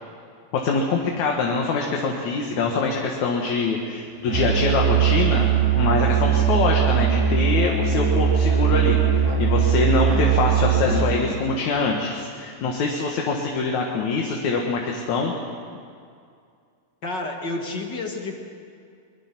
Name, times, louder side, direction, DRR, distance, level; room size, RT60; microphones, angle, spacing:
voice 1, 0.6-5.5 5.8-9.0 9.4-15.3, left 4 dB, 75° left, 0 dB, 3.0 m, -24 dB
Musical instrument, 4.3-11.2, right 8 dB, 30° right, 3.5 m, -20 dB
voice 2, 10.9-11.4 17.0-18.4, left 3 dB, 40° left, 2 dB, 2.1 m, -30 dB
25.0 x 22.0 x 6.0 m, 2.3 s
omnidirectional pair, 3.3 m